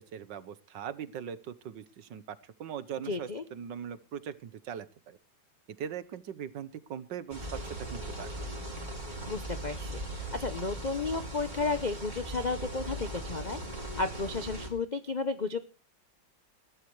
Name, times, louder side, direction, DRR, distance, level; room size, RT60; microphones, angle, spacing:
voice 1, 0.0-5.2 5.7-8.5, right 8 dB, 70° right, 14 dB, 1.6 m, -41 dB
voice 2, 3.0-3.4 9.3-15.6, left 3 dB, 85° left, 11 dB, 0.4 m, -33 dB
sound 1, 7.3-14.7, right 1 dB, 20° right, 4.6 m, -39 dB
21.5 x 13.0 x 3.2 m, 0.34 s
omnidirectional pair, 2.1 m